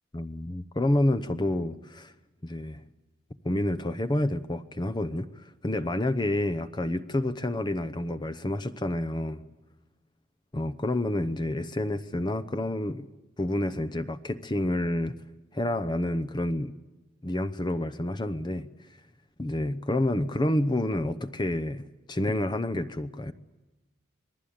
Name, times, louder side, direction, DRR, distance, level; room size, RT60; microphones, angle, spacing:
voice 1, 0.1-2.1 2.4-2.8 3.4-9.4 10.5-13.1 13.4-15.2 15.5-16.7 17.2-18.7 19.4-23.3, left 1 dB, 25° left, 10 dB, 0.8 m, -29 dB
27.0 x 20.5 x 8.8 m, 1.0 s
head